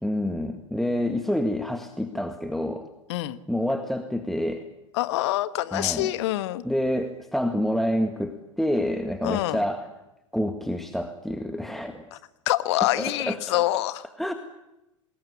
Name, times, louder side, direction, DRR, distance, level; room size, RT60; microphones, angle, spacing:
voice 1, 0.0-2.9 3.5-4.6 5.7-6.1 6.6-9.9 10.3-12.2 13.0-13.8 14.2-14.3, equal, ahead, 6 dB, 1.8 m, -28 dB
voice 2, 4.9-6.6 9.2-9.6 12.1-12.2 12.5-14.0, left 16 dB, 55° left, 13 dB, 1.5 m, -26 dB
26.0 x 20.0 x 9.8 m, 0.94 s
figure-of-eight pair, 80°, 17 cm